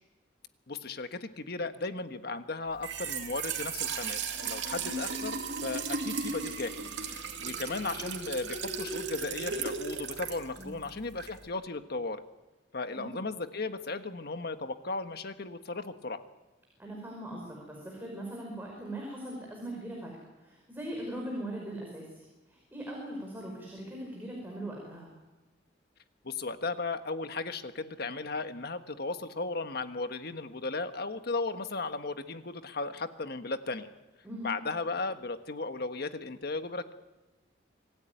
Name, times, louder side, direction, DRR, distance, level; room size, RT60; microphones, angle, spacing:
voice 1, 0.7-6.7 7.1-12.2 12.7-16.3 26.2-33.9 34.4-36.9, left 3 dB, 60° left, 9 dB, 1.4 m, -36 dB
Trickle dribble / Fill (with liquid), 2.7-11.5, right 5 dB, 90° right, 2.5 m, -36 dB
voice 2, 10.6-10.9 12.9-13.1 16.8-20.1 20.4-25.1 34.2-34.5, right 1 dB, 10° right, -1 dB, 5.3 m, -40 dB
26.0 x 15.5 x 9.3 m, 1.1 s
head